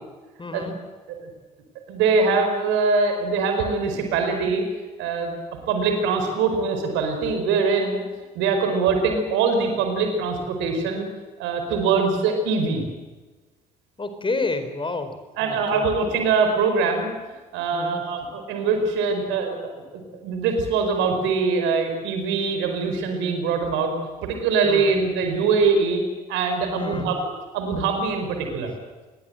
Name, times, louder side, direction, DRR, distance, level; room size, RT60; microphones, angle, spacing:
voice 1, 0.4-0.8 4.2-4.3 14.0-15.1 15.4-15.8 17.7-18.0 24.6-25.0 26.7-27.1, left 3 dB, 25° left, 9 dB, 4.7 m, -30 dB
voice 2, 1.9-4.6 5.0-5.3 5.7-8.0 8.3-11.1 11.4-12.8 15.4-19.6 19.9-23.9 24.2-26.0 26.3-27.2 27.5-28.7, right 4 dB, 65° right, 5 dB, 4.9 m, -23 dB
27.5 x 22.0 x 8.0 m, 1.2 s
figure-of-eight pair, 50°, 21 cm